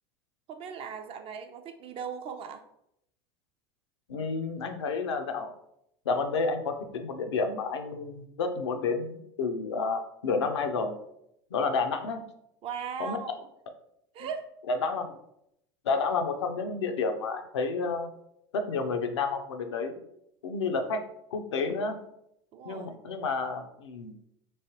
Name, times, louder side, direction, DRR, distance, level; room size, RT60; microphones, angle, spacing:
voice 1, 0.5-2.6 12.6-13.4 14.1-14.5 22.5-23.0, right 7 dB, 40° right, 7 dB, 0.5 m, -38 dB
voice 2, 4.1-5.5 6.1-11.0 11.5-12.2 13.0-13.2 14.7-15.2 15.8-18.1 18.5-20.0 20.4-21.0 21.3-22.0 22.6-24.1, left 4 dB, 90° left, 6 dB, 0.4 m, -30 dB
3.1 x 3.1 x 2.8 m, 0.78 s
hypercardioid pair, 90°, 14 cm